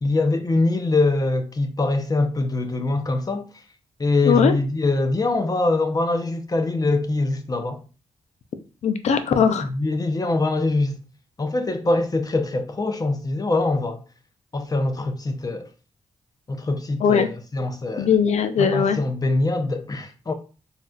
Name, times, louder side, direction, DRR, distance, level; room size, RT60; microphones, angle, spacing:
voice 1, 0.0-3.4 4.0-7.8 9.7-11.0 11.4-14.0 14.5-15.7 16.5-18.1 18.6-20.3, left 2 dB, 30° left, 0.7 m, -23 dB
voice 2, 4.2-4.6 8.8-9.7 17.0-17.3 18.0-19.0, left 7 dB, 70° left, 0.5 m, -19 dB
3.9 x 2.5 x 2.3 m
cardioid pair, 60°, 12 cm